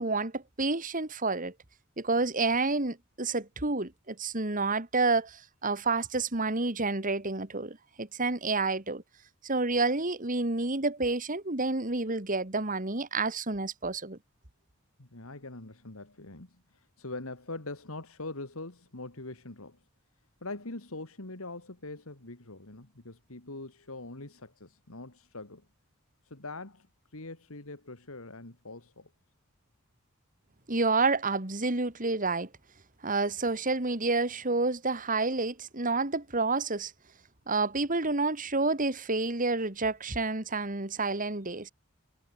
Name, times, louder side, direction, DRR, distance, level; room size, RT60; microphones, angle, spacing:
voice 1, 0.0-1.5 2.0-9.0 9.4-14.2 30.7-32.5 33.0-36.9 37.5-41.7, right 3 dB, 40° right, 2.2 m, -29 dB
voice 2, 15.0-19.8 20.4-25.7 26.2-29.1, left 2 dB, 70° left, 2.5 m, -43 dB
head